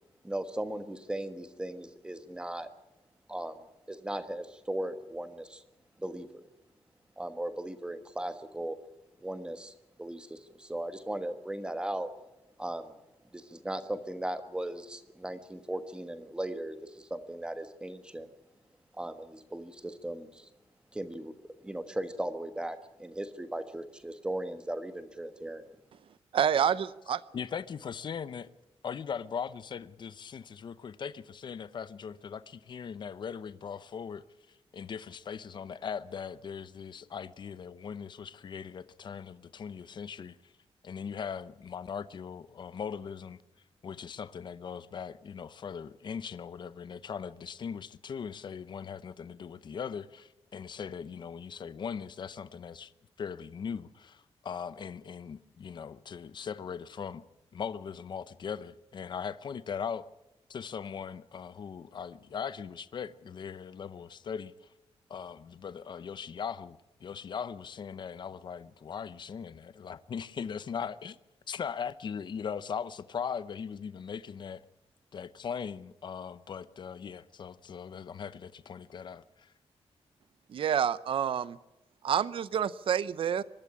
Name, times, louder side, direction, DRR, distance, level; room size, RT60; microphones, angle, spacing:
voice 1, 0.2-2.7 3.3-3.6 3.9-5.6 6.0-6.4 7.2-8.8 9.2-9.7 10.0-12.1 12.6-12.9 13.3-18.3 19.0-20.5 20.9-21.3 21.6-25.7, right 1 dB, 10° right, 1.4 m, -37 dB
voice 2, 26.3-27.2 80.5-81.6 82.0-83.4, right 8 dB, 55° right, 0.6 m, -28 dB
voice 3, 27.3-28.5 28.8-40.4 40.8-43.4 43.8-52.9 53.2-57.2 57.5-60.1 60.5-64.7 65.1-71.2 71.5-74.6 75.1-79.5, left 7 dB, 45° left, 0.8 m, -39 dB
24.0 x 12.0 x 9.9 m
wide cardioid pair, 180°, 11 cm